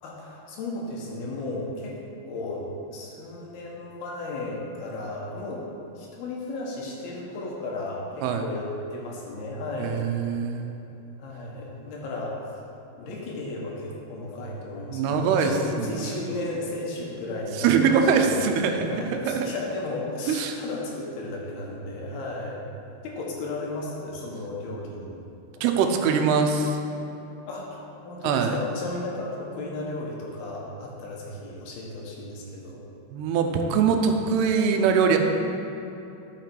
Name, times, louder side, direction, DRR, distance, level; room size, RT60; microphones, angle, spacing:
voice 1, 0.0-2.0 2.3-2.7 2.9-5.6 6.0-10.4 11.2-12.4 13.0-18.4 18.8-22.6 23.0-25.2 27.5-32.8 35.1-35.2, left 2 dB, 75° left, -2 dB, 3.1 m, -34 dB
voice 2, 9.8-10.7 14.9-16.1 17.6-19.5 20.3-20.6 25.6-26.8 28.2-28.6 33.1-35.2, right 6 dB, 90° right, 4 dB, 2.7 m, -23 dB
12.0 x 5.9 x 4.5 m, 3.0 s
omnidirectional pair, 4.6 m